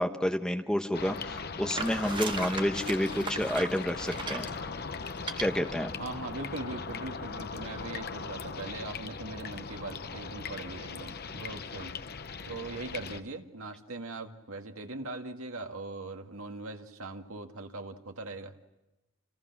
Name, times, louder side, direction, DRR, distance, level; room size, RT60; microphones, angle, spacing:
voice 1, 0.0-4.5 5.4-5.9, equal, 5° left, 5 dB, 1.2 m, -29 dB
sound 1, 0.9-13.2, left 5 dB, 45° left, 0.9 m, -39 dB
sound 2, 1.8-4.6 5.2-5.4, right 4 dB, 20° right, 1.2 m, -37 dB
voice 2, 6.0-11.9 12.4-18.6, right 2 dB, 75° right, 5 dB, 2.0 m, -40 dB
29.5 x 29.5 x 6.1 m, 1.0 s
head